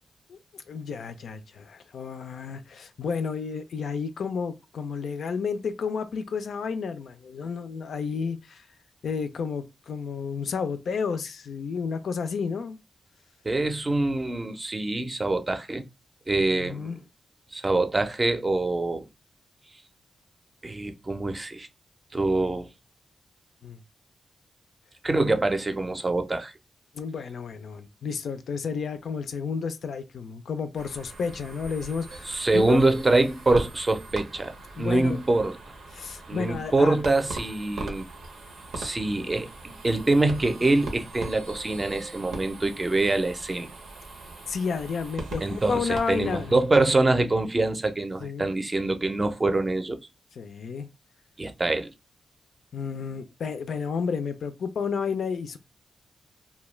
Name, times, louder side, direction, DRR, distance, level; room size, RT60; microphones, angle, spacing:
voice 1, 0.3-8.7 9.0-12.8 16.4-17.0 23.6-23.8 26.9-32.8 34.8-35.2 35.9-37.0 44.5-46.6 48.2-48.5 50.4-50.9 52.7-55.6, left 5 dB, 75° left, 0.3 m, -31 dB
voice 2, 13.4-15.8 16.3-16.9 17.5-19.1 20.6-21.7 22.1-22.7 25.0-26.5 32.3-35.6 36.3-38.0 38.7-43.7 45.4-50.0 51.4-51.9, right 2 dB, 30° right, 0.5 m, -25 dB
sound 1, 30.7-46.8, right 2 dB, 90° right, 0.7 m, -41 dB
2.2 x 2.1 x 3.1 m
cardioid pair, 60°, 0 cm